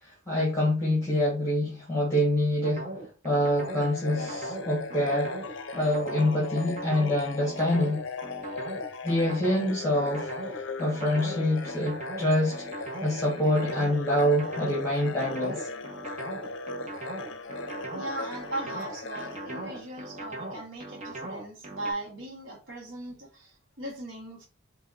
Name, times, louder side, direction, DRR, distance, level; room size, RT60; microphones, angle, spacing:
voice 1, 0.0-2.9 3.2-5.3 5.7-8.0 9.0-15.7, left 1 dB, 15° left, 1.5 m, -26 dB
sound 1, 2.6-21.9, right 2 dB, 35° right, 1.1 m, -39 dB
sound 2, 3.6-20.3, left 3 dB, 60° left, 0.6 m, -38 dB
voice 2, 17.9-24.5, right 1 dB, 60° right, 1.0 m, -38 dB
3.5 x 3.4 x 3.9 m
head